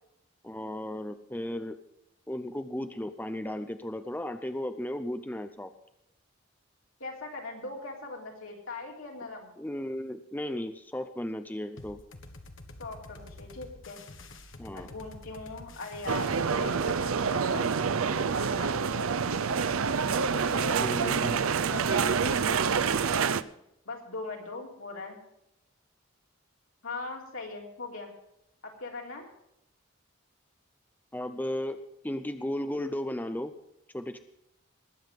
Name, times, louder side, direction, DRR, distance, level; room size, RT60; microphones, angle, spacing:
voice 1, 0.4-1.8 2.3-5.7 9.6-12.0 14.6-14.9 20.8-21.4 31.1-33.5 33.9-34.2, left 1 dB, 10° left, 8 dB, 0.6 m, -35 dB
voice 2, 7.0-9.5 12.8-14.0 14.7-17.7 18.2-19.1 20.3-20.9 21.7-22.4 23.9-25.2 26.8-28.1 28.6-29.3, left 3 dB, 85° left, -1 dB, 3.6 m, -40 dB
sound 1, 11.8-17.4, left 2 dB, 70° left, 1.4 m, -48 dB
sound 2, 16.1-23.4, right 6 dB, 85° right, 0.6 m, -27 dB
20.0 x 7.9 x 5.2 m, 0.82 s
head